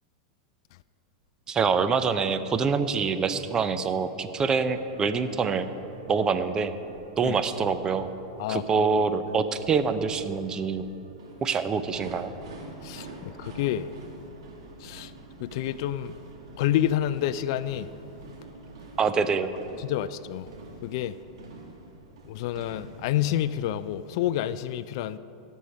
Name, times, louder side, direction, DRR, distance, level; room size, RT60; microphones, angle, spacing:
voice 1, 1.5-5.7 6.1-6.7 7.2-8.1 8.5-10.8 11.4-12.3 19.0-19.5, right 5 dB, 25° right, 0.7 m, -25 dB
sound 1, 4.4-23.5, right 2 dB, 75° right, 2.1 m, -48 dB
voice 2, 13.4-13.9 14.8-15.1 15.4-16.2 16.6-17.9 19.8-20.5 20.8-21.1 22.3-25.2, left 12 dB, 60° left, 0.3 m, -28 dB
16.5 x 6.4 x 5.5 m
hypercardioid pair, 110°, 3 cm